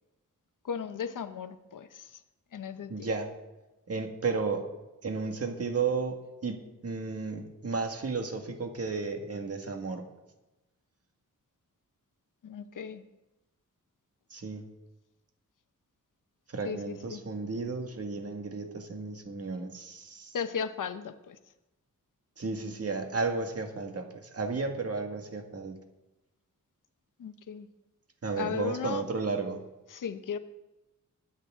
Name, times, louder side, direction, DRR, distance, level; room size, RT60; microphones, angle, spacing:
voice 1, 0.6-2.1 2.5-3.1 12.4-13.0 16.6-17.2 20.3-21.4 27.2-27.7 28.4-29.0 29.9-30.4, left 7 dB, 80° left, 10 dB, 0.9 m, -36 dB
voice 2, 2.9-3.3 3.9-4.7 5.0-6.2 6.4-10.0 14.3-14.7 16.5-20.4 22.4-25.8 28.2-29.6, right 4 dB, 50° right, 4 dB, 1.8 m, -33 dB
23.0 x 8.8 x 3.7 m, 1.0 s
wide cardioid pair, 100°, 31 cm